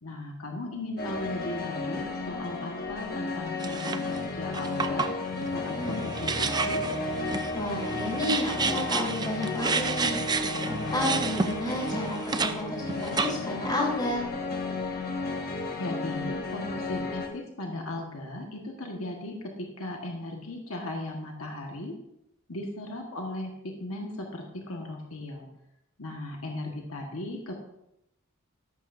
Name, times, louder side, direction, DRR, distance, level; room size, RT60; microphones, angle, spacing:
voice 1, 0.0-5.1 5.5-6.8 15.8-21.9 22.5-25.5 26.0-27.5, left 1 dB, 70° left, 1 dB, 1.5 m, -37 dB
sound 1, 1.0-17.3, left 2 dB, 45° left, 1.6 m, -33 dB
sound 2, 3.6-4.2 4.5-12.5 12.9-13.6, right 4 dB, 20° right, 0.5 m, -31 dB
voice 2, 5.8-6.1 7.5-14.3, left 1 dB, 20° left, -4 dB, 3.8 m, -32 dB
14.0 x 11.5 x 2.6 m, 0.84 s
head